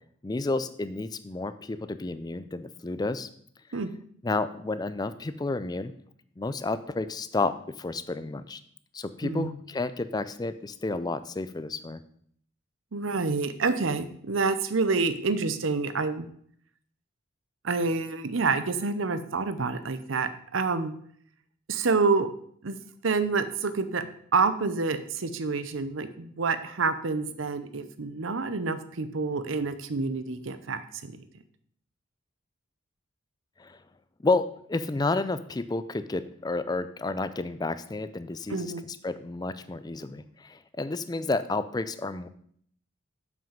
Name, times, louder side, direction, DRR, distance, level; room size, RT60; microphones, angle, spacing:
voice 1, 0.2-3.3 4.2-5.9 6.4-8.6 8.9-12.0 33.6-33.8 34.2-42.3, left 3 dB, 20° left, 13 dB, 0.4 m, -31 dB
voice 2, 9.2-9.5 12.9-16.2 17.6-20.9 21.7-22.3 22.6-22.8 23.0-24.0 24.3-31.1 38.5-38.8, right 4 dB, 75° right, 11 dB, 0.7 m, -28 dB
7.2 x 6.1 x 5.2 m, 0.63 s
head